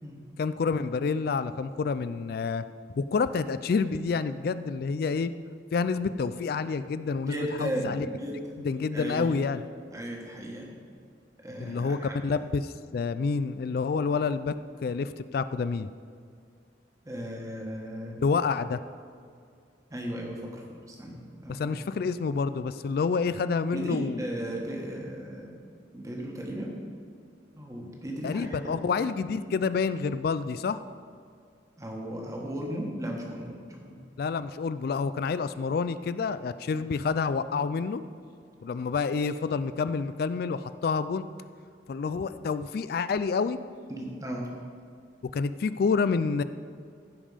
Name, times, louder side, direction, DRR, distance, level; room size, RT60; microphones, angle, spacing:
voice 1, 0.4-2.6 3.0-5.3 5.7-8.1 8.6-9.6 11.6-12.0 12.2-14.5 14.8-15.9 18.2-18.8 21.5-24.2 27.8-27.9 28.2-30.8 34.2-38.0 38.6-41.3 41.9-43.6 45.3-46.4, left 5 dB, 55° left, 13 dB, 0.3 m, -28 dB
voice 2, 7.2-8.6 8.9-9.2 9.9-10.7 11.4-12.2 17.0-18.2 19.9-21.7 23.7-25.5 25.9-26.7 27.6-28.8 31.8-33.5 33.8-34.0 43.9-44.5, equal, 15° right, -1 dB, 1.5 m, -36 dB
15.0 x 5.4 x 5.0 m, 2.2 s
head